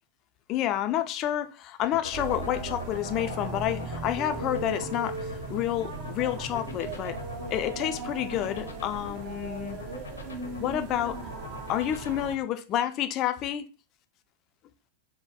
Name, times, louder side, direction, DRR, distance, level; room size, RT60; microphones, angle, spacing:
voice 1, 0.5-7.2 7.5-9.8 10.6-11.2 11.7-13.7, left 12 dB, 35° left, 0.4 m, -29 dB
sound 1, 1.8-12.2, left 4 dB, 75° left, 0.7 m, -41 dB
sound 2, 2.1-12.3, right 3 dB, 45° right, 1.0 m, -37 dB
3.9 x 2.1 x 4.0 m
figure-of-eight pair, 90°, 0 cm